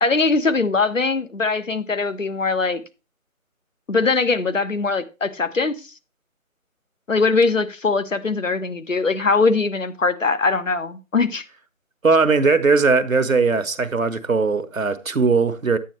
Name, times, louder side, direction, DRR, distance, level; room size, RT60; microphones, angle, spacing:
voice 1, 0.0-2.8 3.9-5.8 7.1-11.4, left 4 dB, 60° left, 1.2 m, -21 dB
voice 2, 12.0-15.8, right 4 dB, 70° right, 1.2 m, -19 dB
10.0 x 9.0 x 3.1 m
figure-of-eight pair, 170°, 42 cm